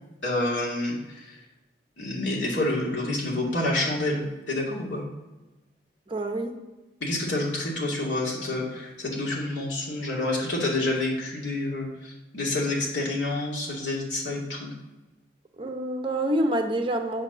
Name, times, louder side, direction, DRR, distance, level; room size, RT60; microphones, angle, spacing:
voice 1, 0.2-1.4 2.0-5.1 7.0-14.7, left 2 dB, 85° left, -4 dB, 2.6 m, -28 dB
voice 2, 6.1-6.5 15.6-17.2, right 1 dB, 30° right, 4 dB, 1.0 m, -27 dB
7.7 x 4.4 x 6.8 m, 1.1 s
head